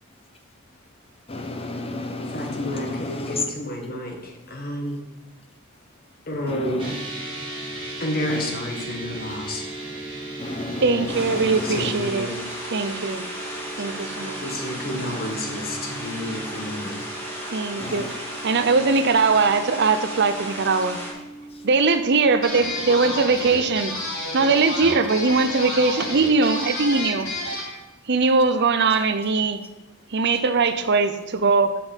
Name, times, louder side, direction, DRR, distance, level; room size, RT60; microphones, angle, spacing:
voice 1, 1.3-3.5 4.4-4.5 6.5-7.0 8.3-8.5 10.4-11.9 17.8-18.1 21.5-21.6, left 2 dB, 25° left, 5 dB, 0.9 m, -32 dB
voice 2, 2.3-5.1 6.3-7.0 8.0-9.7 11.6-12.4 14.4-17.0, left 1 dB, 45° left, 2 dB, 1.7 m, -30 dB
sound 1, 6.8-24.2, right 2 dB, 25° right, 2.3 m, -37 dB
voice 3, 10.8-12.3 12.7-13.3 13.8-14.4 17.5-21.0 21.6-23.9 24.3-27.3 28.1-29.6 30.1-31.7, right 4 dB, 55° right, 10 dB, 0.7 m, -21 dB
sound 2, 11.1-21.1, equal, 10° left, 2.7 m, -35 dB
sound 3, 22.4-27.7, left 1 dB, 70° left, 4.2 m, -30 dB
8.0 x 6.1 x 7.3 m, 1.0 s
head